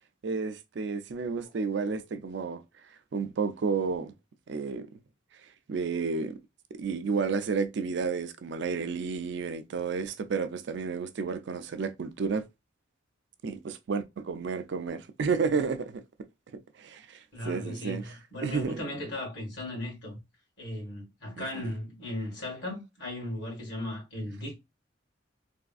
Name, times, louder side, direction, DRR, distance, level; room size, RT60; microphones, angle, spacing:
voice 1, 0.2-2.6 3.1-4.1 4.5-4.9 5.7-6.4 6.8-12.5 13.4-16.0 16.8-18.1 18.4-18.8 21.4-21.7, right 5 dB, 65° right, 0.4 m, -31 dB
voice 2, 17.3-20.2 20.6-24.5, left 1 dB, 65° left, 2.0 m, -37 dB
3.5 x 2.4 x 2.3 m
head